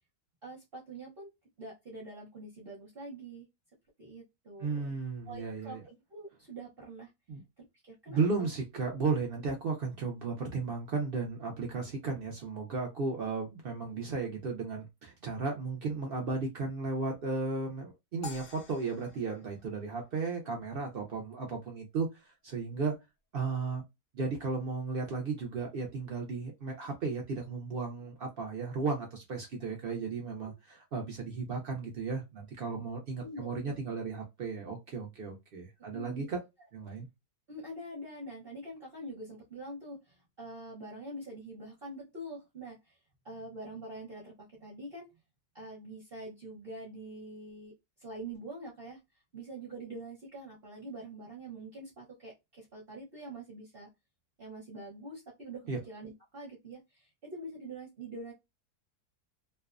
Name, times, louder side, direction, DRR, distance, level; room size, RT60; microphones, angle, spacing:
voice 1, 0.4-1.3 1.6-3.5 4.0-5.0 5.3-7.1 7.8-8.5 33.2-33.8 35.9-36.3 37.5-43.0 43.2-45.1 45.5-47.7 48.0-49.0 49.3-53.9 54.4-58.3, right 1 dB, 45° right, 0.8 m, -45 dB
voice 2, 4.6-5.8 7.3-7.4 8.1-22.9 23.3-23.8 24.1-36.4 36.7-37.1 55.7-55.8, right 4 dB, 80° right, 0.5 m, -35 dB
sound 1, 18.2-20.6, left 5 dB, 55° left, 0.6 m, -49 dB
2.5 x 2.1 x 2.4 m
omnidirectional pair, 1.6 m